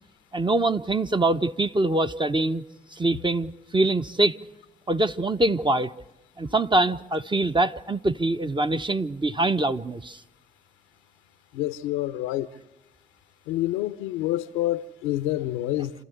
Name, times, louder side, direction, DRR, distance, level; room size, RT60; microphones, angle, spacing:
voice 1, 0.3-2.6 3.0-4.4 4.9-5.9 6.4-10.2, right 2 dB, 20° right, 1.0 m, -24 dB
voice 2, 11.5-12.5 13.5-15.9, left 15 dB, 90° left, 0.7 m, -27 dB
29.0 x 13.5 x 8.1 m
hypercardioid pair, 40°, 21 cm